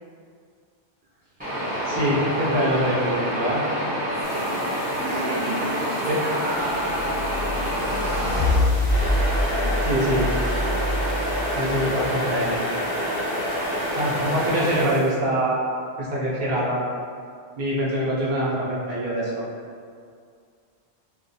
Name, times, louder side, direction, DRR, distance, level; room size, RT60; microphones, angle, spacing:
sound 1, 1.4-8.5 8.9-14.8, equal, 10° right, 0.7 m, -27 dB
voice 1, 1.8-3.6 6.1-6.2 9.8-10.3 11.5-12.6 14.0-15.6 16.0-16.8 17.6-19.4, equal, 50° right, -8 dB, 0.7 m, -24 dB
voice 2, 4.1-4.5 5.0-7.2 7.6-8.6 9.3-10.2, right 1 dB, 80° right, -7 dB, 0.9 m, -32 dB
sound 2, 4.2-15.2, left 1 dB, 40° left, 0.5 m, -44 dB
sound 3, 6.8-12.8, left 1 dB, 65° left, 0.8 m, -26 dB
2.4 x 2.3 x 2.6 m, 2.2 s
omnidirectional pair, 1.1 m